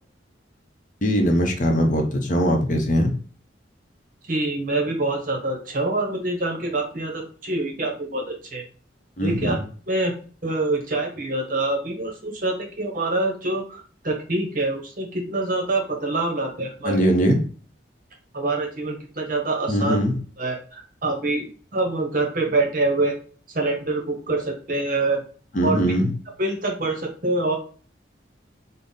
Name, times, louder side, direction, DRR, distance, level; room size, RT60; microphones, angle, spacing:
voice 1, 1.0-3.1 9.2-9.6 16.8-17.5 19.7-20.2 25.5-26.1, equal, 40° left, 3 dB, 0.6 m, -21 dB
voice 2, 4.3-8.6 9.2-9.6 9.9-10.1 10.4-17.0 18.3-20.0 20.4-21.5 21.7-23.1 23.5-25.2 25.6-25.8 26.4-27.6, right 2 dB, 45° right, 2 dB, 0.8 m, -25 dB
3.9 x 2.0 x 3.7 m, 0.41 s
head